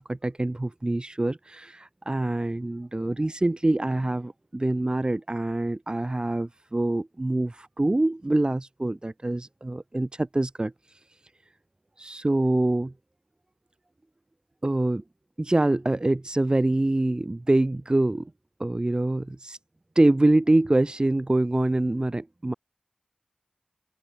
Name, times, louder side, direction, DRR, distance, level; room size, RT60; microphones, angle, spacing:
voice 1, 0.0-11.0 12.0-12.9 14.6-15.0 15.4-18.3 18.6-19.6 19.9-22.5, right 2 dB, 40° right, 2.9 m, -25 dB
open air
wide cardioid pair, 55°, 2 cm